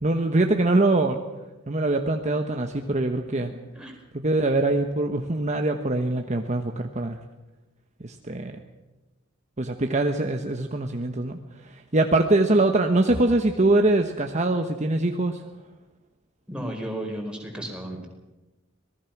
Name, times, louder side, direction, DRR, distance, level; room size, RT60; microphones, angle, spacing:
voice 1, 0.0-1.2 1.7-3.5 4.1-7.2 8.0-8.6 9.6-15.4, right 2 dB, 35° right, 4 dB, 1.1 m, -23 dB
voice 2, 16.5-18.1, right 1 dB, 5° right, 0 dB, 4.8 m, -33 dB
26.0 x 19.0 x 6.0 m, 1.1 s
head